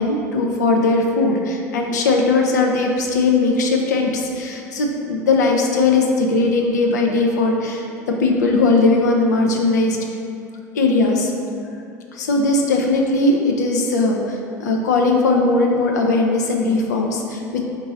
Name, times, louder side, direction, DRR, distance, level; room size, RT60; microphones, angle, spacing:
voice 1, 0.0-10.0 10.7-11.3 12.1-17.6, left 3 dB, 80° left, 1 dB, 0.5 m, -19 dB
3.8 x 2.6 x 3.7 m, 2.5 s
hypercardioid pair, 75°, 9 cm